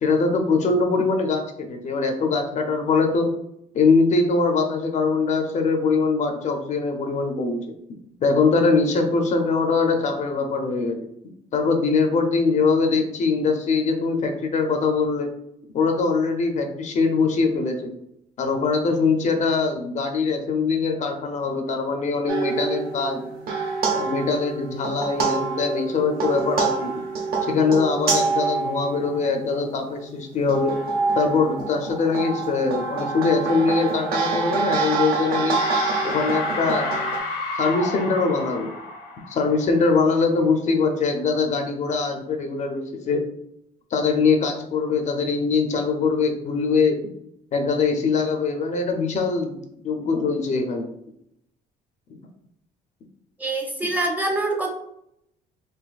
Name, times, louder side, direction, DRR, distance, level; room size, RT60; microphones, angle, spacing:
voice 1, 0.0-3.3 3.7-7.8 8.2-11.0 11.5-15.3 15.7-17.9 18.4-23.2 23.9-26.9 27.4-30.8 31.1-35.6 36.0-37.0 37.6-38.7 39.3-43.3 43.9-47.0 47.5-49.6 49.8-50.9, left 4 dB, 45° left, 4 dB, 0.5 m, -22 dB
sound 1, 22.3-29.7 30.3-37.2, right 4 dB, 65° right, 0.8 m, -26 dB
sound 2, 35.5-40.1, left 3 dB, 90° left, 1.0 m, -31 dB
voice 2, 53.4-54.7, right 2 dB, 10° right, 1 dB, 0.7 m, -25 dB
3.9 x 2.6 x 2.4 m, 0.76 s
cardioid pair, 110°, 17 cm